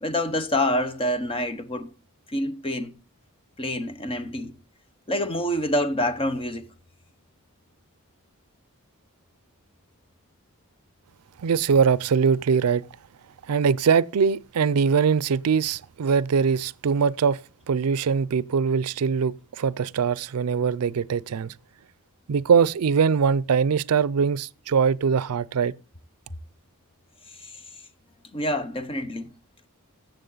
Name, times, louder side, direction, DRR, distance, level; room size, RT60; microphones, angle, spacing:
voice 1, 0.0-1.9 2.3-2.9 3.6-4.6 5.1-6.7 27.4-27.5 28.3-29.3, left 1 dB, 25° left, 0.9 m, -27 dB
voice 2, 11.4-12.9 13.5-17.4 17.7-21.5 22.3-25.7, right 6 dB, 80° right, 0.4 m, -22 dB
13.5 x 7.9 x 3.9 m
head